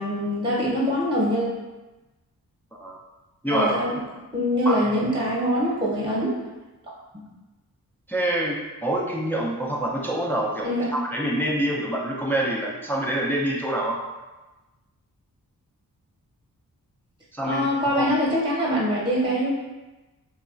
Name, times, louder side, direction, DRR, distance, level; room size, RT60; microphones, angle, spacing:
voice 1, 0.0-1.5 3.5-3.9 4.3-6.4 6.8-7.2 10.6-10.9 17.4-19.5, equal, 15° right, -5 dB, 0.9 m, -24 dB
voice 2, 3.4-3.8 4.7-5.1 8.1-14.0 17.3-17.7 18.0-18.1, right 1 dB, 5° left, -3 dB, 0.4 m, -26 dB
2.9 x 2.2 x 2.4 m, 1.1 s
cardioid pair, 45°, 37 cm